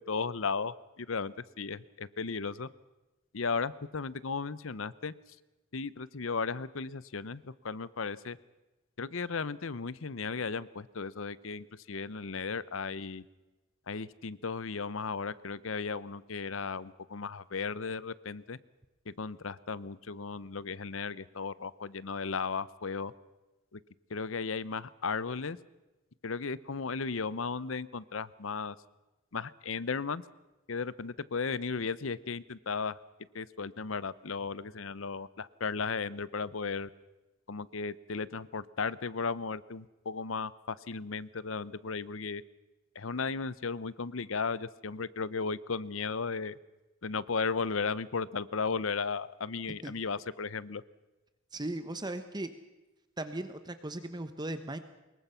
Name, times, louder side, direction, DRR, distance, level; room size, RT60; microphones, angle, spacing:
voice 1, 0.0-2.7 3.3-5.1 5.7-8.4 9.0-13.2 13.9-18.6 19.1-23.1 23.7-23.8 24.1-25.6 26.2-28.8 29.3-30.2 30.7-32.9 33.3-36.9 37.5-42.4 42.9-46.6 47.0-50.8, left 5 dB, 70° left, 18 dB, 0.8 m, -35 dB
voice 2, 51.5-52.5 53.2-54.8, right 1 dB, 20° right, 9 dB, 1.1 m, -37 dB
25.5 x 22.0 x 5.7 m, 1.1 s
head